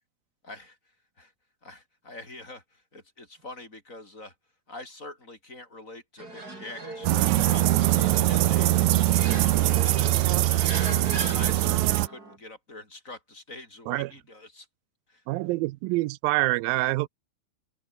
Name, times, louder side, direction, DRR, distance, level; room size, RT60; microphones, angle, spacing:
voice 1, 0.4-1.3 1.6-4.4 4.7-14.7 15.1-15.2, left 2 dB, 20° left, 7.8 m, -45 dB
sound 1, 6.2-12.4, right 2 dB, 25° right, 6.0 m, -39 dB
sound 2, 7.0-12.1, right 15 dB, 70° right, 1.9 m, -22 dB
voice 2, 15.3-17.1, right 20 dB, 90° right, 2.4 m, -26 dB
omnidirectional pair, 4.1 m